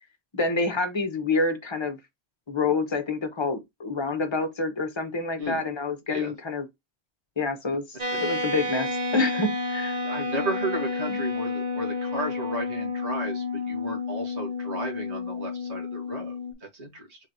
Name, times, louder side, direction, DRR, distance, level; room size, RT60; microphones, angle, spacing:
voice 1, 0.3-2.0 2.5-6.6 7.4-10.0, left 3 dB, 25° left, 0.9 m, -27 dB
sound 1, 8.0-16.5, left 3 dB, 40° right, 1.0 m, -30 dB
voice 2, 10.0-17.2, right 1 dB, 75° right, 2.1 m, -34 dB
4.0 x 3.1 x 4.0 m
omnidirectional pair, 1.2 m